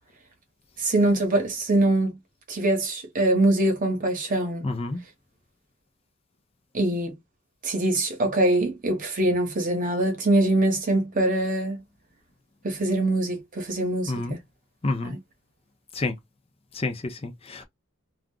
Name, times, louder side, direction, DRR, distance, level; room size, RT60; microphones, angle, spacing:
voice 1, 0.8-2.2 2.5-4.6 6.7-7.1 7.6-11.8 12.6-14.4 15.0-15.2, right 1 dB, 40° right, 1.0 m, -23 dB
voice 2, 4.6-5.0 14.1-14.4 14.8-15.2 15.9-16.2 16.7-17.7, left 2 dB, 30° left, 0.5 m, -29 dB
2.4 x 2.1 x 3.5 m
head